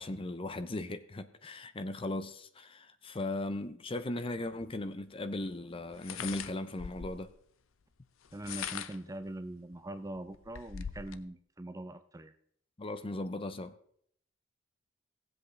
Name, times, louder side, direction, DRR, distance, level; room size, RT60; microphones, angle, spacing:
voice 1, 0.0-7.3 12.8-13.7, left 2 dB, 25° left, 0.6 m, -37 dB
sound 1, 4.6-4.7 5.9-7.3 8.2-9.1 9.7-9.8 10.2-11.2, left 8 dB, 90° left, 0.6 m, -41 dB
voice 2, 8.3-12.3, right 1 dB, 15° right, 0.5 m, -42 dB
17.5 x 7.9 x 3.2 m
head